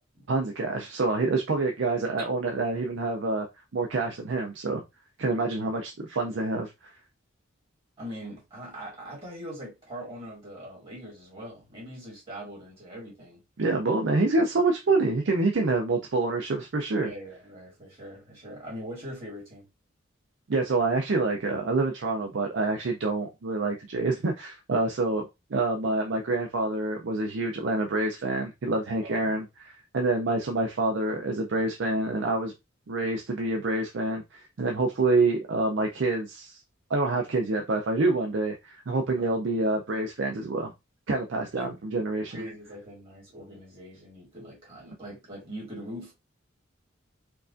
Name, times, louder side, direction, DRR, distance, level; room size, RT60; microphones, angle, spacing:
voice 1, 0.3-3.5 3.7-4.8 5.2-6.9 13.6-17.1 20.5-32.5 32.9-36.6 36.9-40.7 41.1-42.4, right 3 dB, 65° right, 0.5 m, -27 dB
voice 2, 8.0-13.4 17.0-19.7 29.0-29.3 39.2-39.3 41.6-41.7 42.1-46.1, equal, 30° right, 1.8 m, -42 dB
4.6 x 2.4 x 2.5 m
head